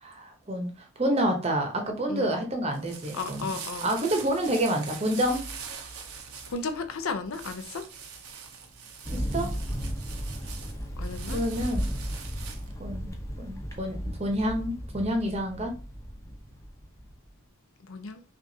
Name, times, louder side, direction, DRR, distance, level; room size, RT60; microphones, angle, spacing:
voice 1, 0.0-3.6 3.8-5.5 9.1-9.5 11.3-11.9 12.8-13.1 13.4-15.8, right 1 dB, 30° right, 0.8 m, -28 dB
sound 1, 2.5-12.8, right 6 dB, 85° right, 0.7 m, -43 dB
voice 2, 3.1-3.9 6.5-7.8 11.0-11.4 17.8-18.2, left 4 dB, 75° left, 0.6 m, -34 dB
Thunder, 9.0-17.3, equal, 15° left, 0.7 m, -35 dB
5.6 x 2.5 x 2.7 m
head